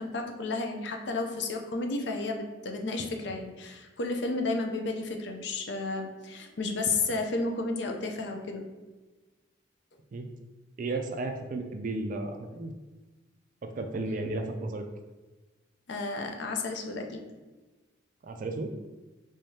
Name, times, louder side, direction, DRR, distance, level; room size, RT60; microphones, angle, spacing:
voice 1, 0.0-8.6 15.9-17.2, left 3 dB, 60° left, 3 dB, 0.5 m, -32 dB
voice 2, 10.8-12.7 13.6-14.8 18.2-18.7, right 2 dB, 40° right, 6 dB, 0.3 m, -33 dB
3.5 x 3.4 x 2.7 m, 1.2 s
head